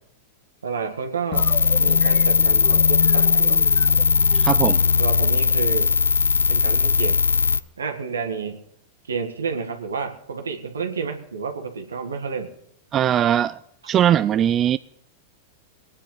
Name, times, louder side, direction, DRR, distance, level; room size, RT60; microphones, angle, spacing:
voice 1, 0.6-1.5 1.8-3.6 5.0-5.9 6.5-7.3 7.8-8.6 9.0-12.5, right 5 dB, 85° right, 1.9 m, -30 dB
sound 1, 1.3-7.6, left 5 dB, 85° left, 0.4 m, -18 dB
sound 2, 1.3-6.0, left 14 dB, 40° left, 1.1 m, -31 dB
voice 2, 4.3-4.8 12.9-13.6 13.9-14.8, right 10 dB, 30° right, 0.4 m, -20 dB
22.0 x 9.7 x 4.0 m
hypercardioid pair, 100°, 0 cm